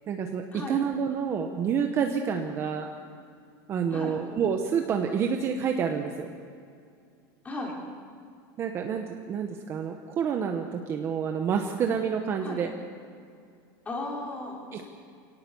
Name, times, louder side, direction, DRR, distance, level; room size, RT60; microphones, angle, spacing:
voice 1, 0.1-2.9 3.7-6.3 8.6-12.7 14.7-14.8, right 7 dB, 20° right, 4 dB, 1.0 m, -28 dB
voice 2, 7.4-7.7 12.4-12.6 13.9-14.6, left 2 dB, 15° left, 0 dB, 3.4 m, -35 dB
24.0 x 18.0 x 7.0 m, 2.4 s
supercardioid pair, 180°, 11 cm